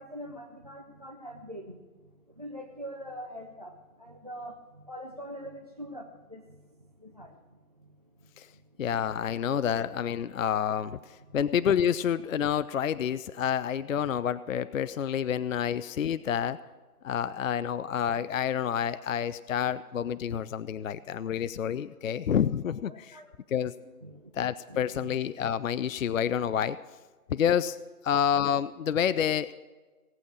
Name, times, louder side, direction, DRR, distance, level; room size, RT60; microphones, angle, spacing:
voice 1, 0.0-1.8 2.4-3.7 4.0-4.5 4.9-6.4 7.0-7.3 22.9-23.3 24.0-24.2 24.7-25.1, equal, 25° right, 4 dB, 0.5 m, -43 dB
voice 2, 8.8-16.6 17.0-23.2 23.5-23.7 24.3-26.8 27.3-27.8 28.0-29.5, left 8 dB, 60° left, 15 dB, 0.5 m, -28 dB
17.5 x 8.5 x 6.2 m, 1.4 s
hypercardioid pair, 160°, 47 cm